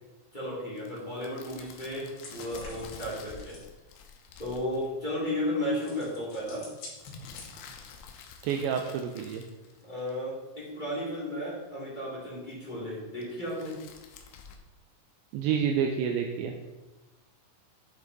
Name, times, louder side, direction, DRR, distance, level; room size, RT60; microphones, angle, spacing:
voice 1, 0.3-3.6 4.4-6.7 9.8-13.8, left 1 dB, 20° left, -7 dB, 1.4 m, -34 dB
sound 1, 0.8-4.9 7.0-10.2 13.2-14.6, left 6 dB, 80° left, 2.8 m, -49 dB
sound 2, 2.2-3.7 5.7-7.9, left 3 dB, 60° left, 4.0 m, -48 dB
voice 2, 8.4-9.4 15.3-16.5, right 7 dB, 85° right, 3 dB, 2.6 m, -28 dB
11.0 x 5.2 x 4.1 m, 1.1 s
omnidirectional pair, 5.7 m